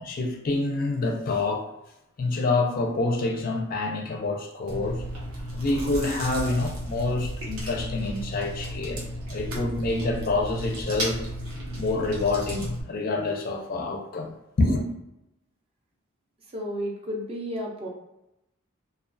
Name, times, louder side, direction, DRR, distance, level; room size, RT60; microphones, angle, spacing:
voice 1, 0.0-1.7 2.2-5.0 5.5-11.2 11.8-14.8, left 2 dB, 45° left, 0.4 m, -27 dB
Chewing mastication, 4.7-12.8, equal, 90° right, 0.7 m, -34 dB
voice 2, 16.5-17.9, equal, 30° right, 0.5 m, -32 dB
2.3 x 2.3 x 2.4 m
head